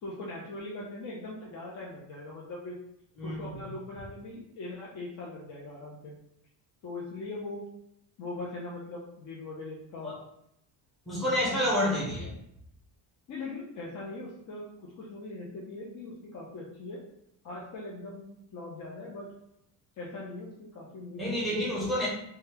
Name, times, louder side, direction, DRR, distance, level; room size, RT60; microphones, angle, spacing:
voice 1, 0.0-2.7 3.2-6.1 6.8-7.7 8.2-10.1 11.5-11.7 13.3-17.0 17.4-19.3 20.0-21.3 21.6-21.7, left 2 dB, 40° left, -4 dB, 0.6 m, -41 dB
voice 2, 3.2-3.6 10.0-10.2 11.1-12.3 21.2-22.1, left 1 dB, ahead, -7 dB, 0.7 m, -29 dB
2.7 x 2.3 x 3.3 m, 0.77 s
cardioid pair, 145°, 47 cm